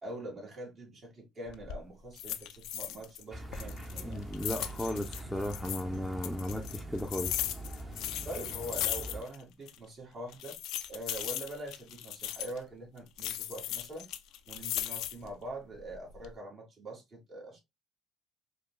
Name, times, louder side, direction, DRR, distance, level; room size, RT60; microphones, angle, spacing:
voice 1, 0.0-4.2 8.2-10.6 10.9-14.1 14.5-17.6, right 1 dB, 45° right, 1.9 m, -43 dB
sound 1, 1.5-1.8 2.2-3.2 3.5-5.8 6.2-9.4 9.7-9.8 10.3-12.6 13.2-15.3 15.8-16.3, left 12 dB, 70° left, 0.4 m, -37 dB
sound 2, 3.3-9.2, right 1 dB, 25° right, 1.0 m, -43 dB
voice 2, 4.0-7.4, left 1 dB, ahead, 0.7 m, -35 dB
5.0 x 2.3 x 2.2 m
supercardioid pair, 70°, 0 cm